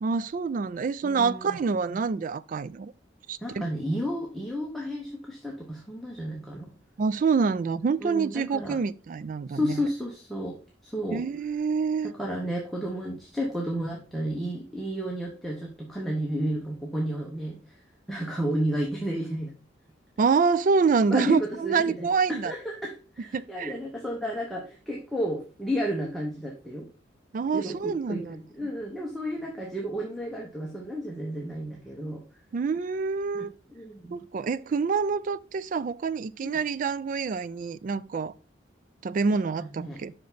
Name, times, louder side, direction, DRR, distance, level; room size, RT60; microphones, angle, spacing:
voice 1, 0.0-2.9 3.3-3.7 7.0-9.9 11.1-12.1 20.2-22.5 23.3-23.7 27.3-28.4 32.5-33.5 34.1-38.3 39.0-40.1, right 5 dB, 45° right, 0.3 m, -26 dB
voice 2, 1.0-1.6 1.9-2.0 3.4-6.7 8.0-8.8 9.5-10.6 10.8-11.2 12.2-17.6 18.1-19.5 21.1-26.9 27.5-32.2 33.3-34.2 39.3-39.4 39.8-40.0, equal, ahead, 0.9 m, -32 dB
5.7 x 5.1 x 3.9 m
head